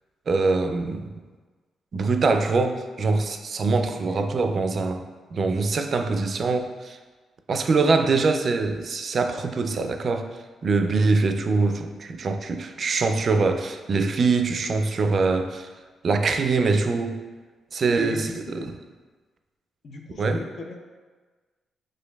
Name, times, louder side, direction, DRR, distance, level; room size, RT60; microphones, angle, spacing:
voice 1, 0.3-1.1 1.9-5.0 5.3-7.0 7.5-10.3 10.6-15.7 16.0-17.2 17.7-18.7 20.2-20.4, right 3 dB, 50° right, 7 dB, 0.3 m, -23 dB
voice 2, 3.8-4.3 18.0-18.7 19.8-20.8, left 3 dB, 60° left, 1 dB, 0.5 m, -37 dB
6.2 x 2.5 x 2.2 m, 1.4 s
cardioid pair, 80°, 0 cm